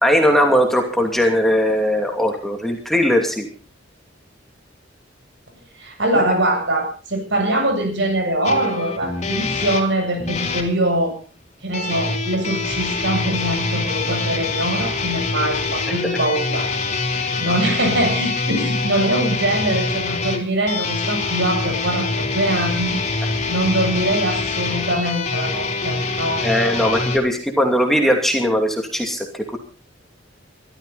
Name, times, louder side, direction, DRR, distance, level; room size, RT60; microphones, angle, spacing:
voice 1, 0.0-3.5 6.1-6.2 26.4-29.6, equal, ahead, 2 dB, 2.6 m, -19 dB
voice 2, 5.8-11.2 11.6-16.7 17.1-26.4 26.8-27.0, right 1 dB, 65° right, 4 dB, 7.9 m, -23 dB
sound 1, 8.4-10.7 11.7-27.2, left 3 dB, 35° left, 3.8 m, -24 dB
23.0 x 13.5 x 4.1 m, 0.36 s
head